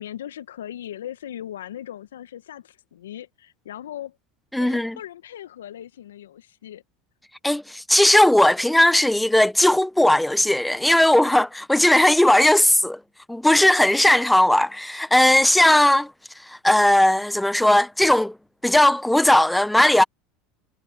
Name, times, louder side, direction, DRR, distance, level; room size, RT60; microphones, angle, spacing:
voice 1, 0.0-4.2 4.6-6.8, left 11 dB, 80° left, 1.5 m, -38 dB
voice 2, 4.5-5.0 7.4-13.0 13.3-16.1 16.5-18.3 18.6-20.0, left 1 dB, 5° left, 0.8 m, -17 dB
hypercardioid pair, 80°, 0 cm